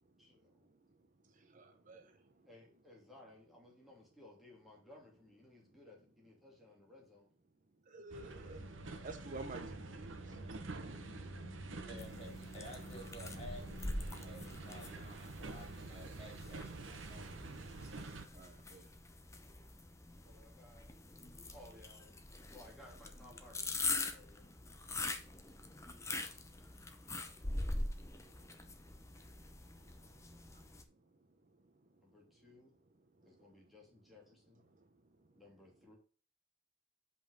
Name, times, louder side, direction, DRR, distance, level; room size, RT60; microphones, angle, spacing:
voice 1, 0.2-0.7 2.4-7.3 20.2-20.9 21.5-22.2 22.5-24.4 32.0-32.7 33.2-34.7 35.3-36.0, left 1 dB, ahead, 2.7 m, -60 dB
voice 2, 1.2-2.5 7.9-8.6 9.0-10.4 11.8-12.0 18.3-18.9 29.8-30.3 33.2-33.3 34.7-34.8, right 2 dB, 40° right, 0.8 m, -51 dB
sound 1, 8.1-18.3, right 3 dB, 75° right, 1.0 m, -48 dB
sound 2, 8.3-15.1, right 1 dB, 60° left, 1.5 m, -53 dB
voice 3, 11.8-17.5, equal, 30° left, 3.6 m, -53 dB
sound 3, 12.0-30.8, left 2 dB, 15° left, 0.8 m, -44 dB
5.6 x 5.3 x 6.5 m
head